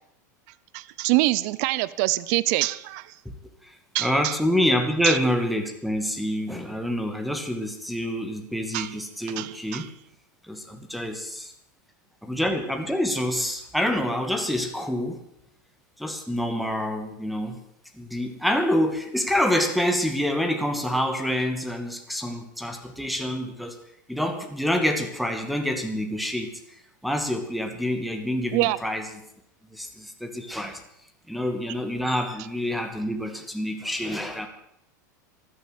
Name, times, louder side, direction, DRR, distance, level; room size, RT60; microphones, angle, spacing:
voice 1, 0.7-3.1 3.9-4.3 5.0-5.2 8.7-8.9 9.3-9.9 28.5-28.8, right 19 dB, 55° right, 19 dB, 0.8 m, -25 dB
voice 2, 4.0-9.9 10.5-11.5 12.2-15.2 16.0-17.6 17.9-23.8 24.1-26.5 27.0-29.1 29.7-30.8 31.3-34.5, equal, ahead, 4 dB, 2.3 m, -27 dB
13.5 x 10.0 x 9.3 m, 0.74 s
hypercardioid pair, 105°, 10 cm